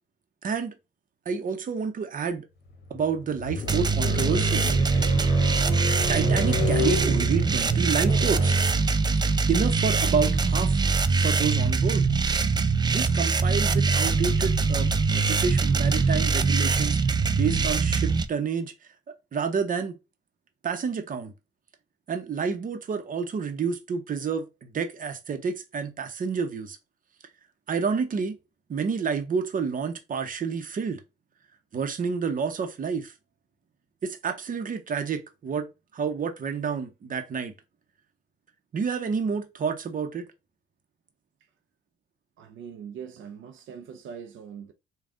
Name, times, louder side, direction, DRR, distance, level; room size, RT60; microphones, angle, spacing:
voice 1, 0.4-0.7 1.3-2.4 2.9-4.7 5.8-8.5 9.5-10.8 11.2-12.1 12.9-17.0 17.3-18.7 19.3-20.0 20.6-21.3 22.1-26.8 27.7-28.4 28.7-31.0 31.7-33.1 34.0-35.7 35.9-37.5 38.7-40.3, right 6 dB, 45° right, 0.8 m, -29 dB
sound 1, 2.7-12.9, left 5 dB, 60° left, 1.1 m, -35 dB
sound 2, 3.7-18.3, right 4 dB, 20° right, 0.4 m, -23 dB
voice 2, 42.4-44.7, right 7 dB, 80° right, 0.6 m, -41 dB
3.5 x 2.3 x 3.7 m
cardioid pair, 90°, 20 cm